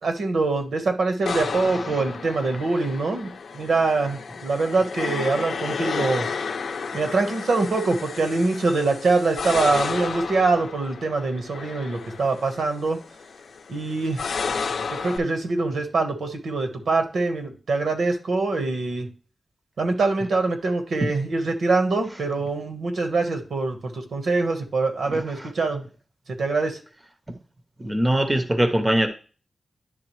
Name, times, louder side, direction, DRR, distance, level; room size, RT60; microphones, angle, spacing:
voice 1, 0.0-6.3 6.9-13.0 13.7-14.3 14.9-19.1 19.8-25.8 26.4-26.8, right 3 dB, 75° right, 5 dB, 1.2 m, -24 dB
sound 1, 1.3-15.2, left 5 dB, 80° left, 0.5 m, -32 dB
voice 2, 25.1-25.5 27.3-27.4 27.8-29.1, right 1 dB, 15° right, 7 dB, 0.6 m, -22 dB
10.5 x 3.6 x 3.1 m, 0.37 s
wide cardioid pair, 170°, 0 cm